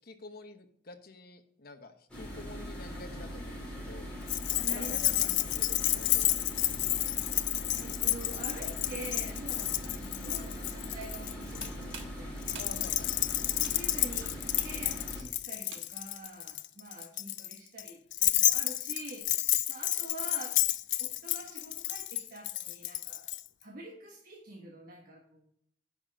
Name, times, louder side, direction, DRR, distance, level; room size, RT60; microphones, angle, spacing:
voice 1, 0.0-4.1 4.7-5.1 5.4-6.5 12.6-13.1, left 3 dB, 55° left, 6 dB, 1.1 m, -49 dB
sound 1, 2.1-15.2, equal, 5° left, 4.3 m, -41 dB
Keys jangling, 4.3-11.7 12.4-23.4, left 16 dB, 75° left, 0.4 m, -31 dB
voice 2, 4.5-5.3 7.7-12.3 13.5-14.3 14.6-19.3 19.7-20.5 21.0-23.3 23.6-25.5, right 2 dB, 55° right, -1 dB, 1.3 m, -46 dB
sound 2, 11.6-16.2, right 6 dB, 90° right, 1.4 m, -50 dB
9.8 x 6.0 x 5.3 m, 0.69 s
head